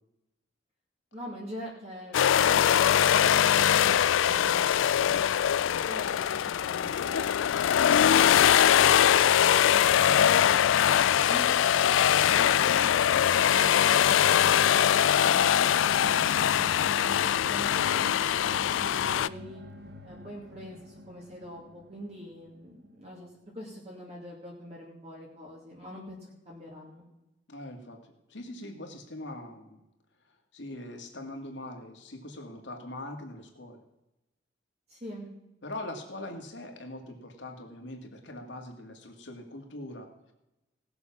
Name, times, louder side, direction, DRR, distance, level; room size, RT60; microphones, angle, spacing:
voice 1, 1.1-5.4 5.9-7.3 11.3-13.1 17.2-18.2 18.4-19.6 20.0-23.3 23.5-27.1 34.9-35.3, equal, 35° right, -3 dB, 2.4 m, -44 dB
sound 1, 2.1-19.3, left 9 dB, 90° left, 0.3 m, -22 dB
sound 2, 15.8-23.6, equal, 55° right, 1.5 m, -47 dB
voice 2, 27.5-29.8 30.3-33.8 35.6-40.3, left 1 dB, 70° left, 3 dB, 2.2 m, -42 dB
18.0 x 6.9 x 6.0 m, 0.94 s
head